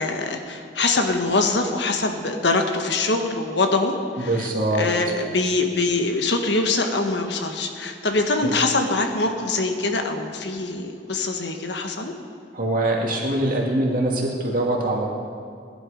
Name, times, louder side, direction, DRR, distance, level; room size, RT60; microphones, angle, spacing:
voice 1, 0.0-12.1, left 3 dB, 75° left, 4 dB, 1.4 m, -24 dB
voice 2, 4.2-4.9 8.4-8.5 12.5-15.1, right 1 dB, 50° right, -1 dB, 2.4 m, -23 dB
19.0 x 11.0 x 5.1 m, 2.3 s
head